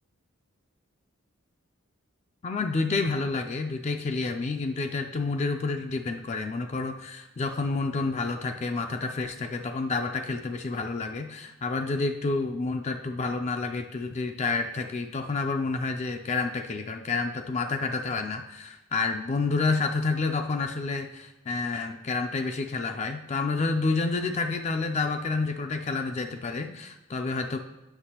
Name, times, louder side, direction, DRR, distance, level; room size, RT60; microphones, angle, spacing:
voice 1, 2.4-27.6, left 3 dB, 30° left, 6 dB, 0.3 m, -29 dB
7.9 x 5.7 x 2.8 m, 1.0 s
head